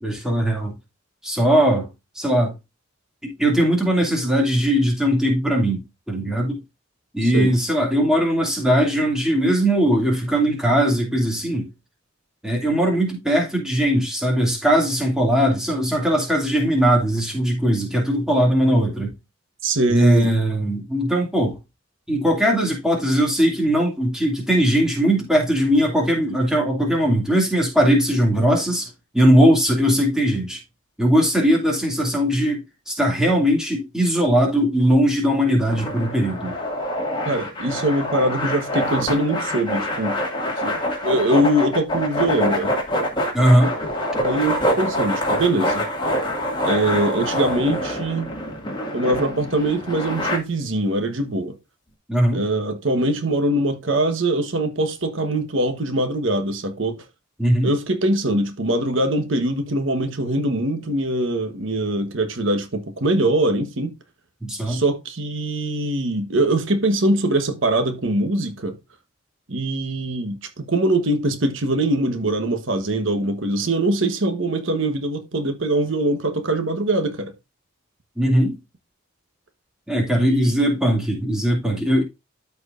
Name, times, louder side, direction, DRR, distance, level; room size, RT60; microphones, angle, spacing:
voice 1, 0.0-0.7 1.2-1.9 2.2-2.5 3.2-5.8 6.1-6.6 7.1-11.7 12.4-19.1 19.9-21.6 22.1-28.9 29.1-30.6 31.0-32.6 32.9-36.6 43.3-43.7 52.1-52.4 57.4-57.7 64.4-64.8 78.2-78.6 79.9-82.0, equal, 5° right, 2.4 m, -19 dB
voice 2, 7.2-7.5 19.6-20.3 37.3-40.2 40.6-40.8 41.0-42.7 44.2-45.8 46.6-48.3 48.9-51.6 52.3-57.0 57.6-63.9 64.7-68.8 69.5-77.3 80.1-80.7, right 1 dB, 70° right, 1.2 m, -22 dB
sound 1, 35.7-50.4, equal, 20° left, 2.1 m, -25 dB
13.0 x 4.8 x 2.5 m
head